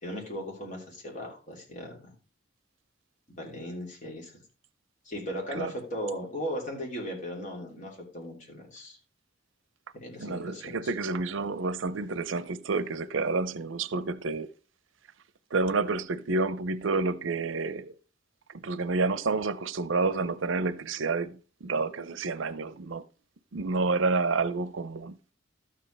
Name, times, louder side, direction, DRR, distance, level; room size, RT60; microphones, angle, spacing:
voice 1, 0.0-2.1 3.4-4.3 5.0-9.0 9.9-10.9, equal, 40° left, 3.1 m, -37 dB
voice 2, 10.2-14.5 15.5-17.9 18.5-23.0 23.5-25.2, right 3 dB, 80° right, 0.6 m, -29 dB
12.5 x 7.6 x 3.3 m
head